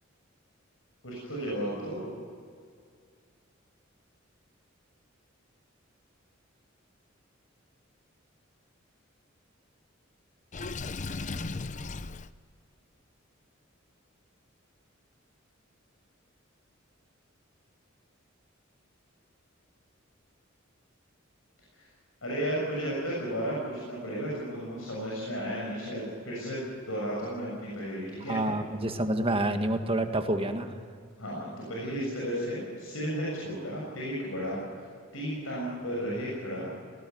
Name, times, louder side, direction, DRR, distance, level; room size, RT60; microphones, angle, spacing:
voice 1, 1.0-2.1 21.7-21.8 22.2-28.4 31.2-34.8 35.1-36.7, equal, 85° left, -4 dB, 6.8 m, -34 dB
Water / Sink (filling or washing), 10.5-12.3, left 3 dB, 35° left, 0.6 m, -36 dB
voice 2, 28.3-30.7, right 1 dB, 30° right, 6 dB, 1.7 m, -28 dB
20.0 x 18.5 x 9.5 m, 2.2 s
head